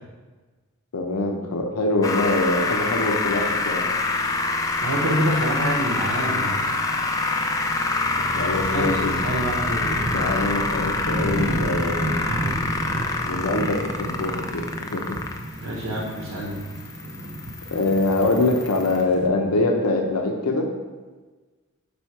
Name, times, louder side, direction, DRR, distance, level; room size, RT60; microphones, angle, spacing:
voice 1, 0.9-3.8 8.3-9.1 10.1-12.3 13.3-15.0 17.7-20.7, left 2 dB, 90° left, 2 dB, 0.6 m, -24 dB
sound 1, 2.0-19.0, left 3 dB, 15° left, 0.3 m, -26 dB
voice 2, 4.8-6.6 8.7-10.0 15.6-16.6, right 1 dB, 75° right, -2 dB, 1.0 m, -27 dB
sound 2, 5.2-19.3, right 1 dB, 50° right, 0.6 m, -34 dB
5.5 x 4.3 x 4.5 m, 1.3 s
head